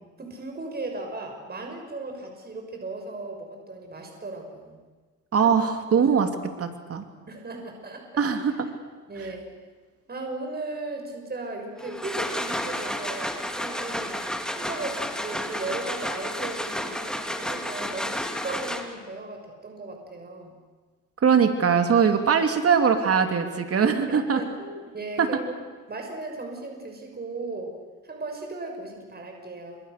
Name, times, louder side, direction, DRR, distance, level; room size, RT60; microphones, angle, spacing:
voice 1, 0.2-4.8 5.4-5.6 7.3-8.1 9.1-9.5 10.1-14.2 14.5-20.6 24.1-25.4 25.9-27.7 28.0-29.8, right 2 dB, 30° right, 3 dB, 6.3 m, -36 dB
voice 2, 5.3-6.3 6.6-7.0 8.2-8.7 21.2-24.4 25.2-25.3, right 6 dB, 50° right, 6 dB, 3.0 m, -21 dB
sound 1, 11.8-19.1, equal, ahead, 3.2 m, -31 dB
29.5 x 26.5 x 6.8 m, 1.4 s
cardioid pair, 90°, 30 cm